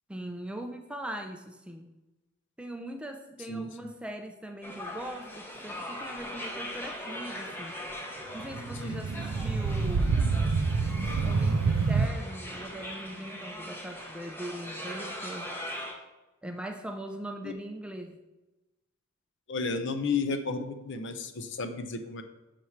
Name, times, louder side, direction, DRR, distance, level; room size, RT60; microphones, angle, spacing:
voice 1, 0.1-1.9 2.6-7.8 8.3-10.3 11.2-15.5 16.4-18.2, right 1 dB, 5° right, 4 dB, 0.4 m, -40 dB
sound 1, 4.6-15.9, equal, 10° left, 0.8 m, -40 dB
sound 2, 8.4-12.1, right 4 dB, 75° right, 0.5 m, -27 dB
voice 2, 19.5-22.2, left 4 dB, 55° left, 8 dB, 0.6 m, -32 dB
5.9 x 4.8 x 5.6 m, 1.0 s
head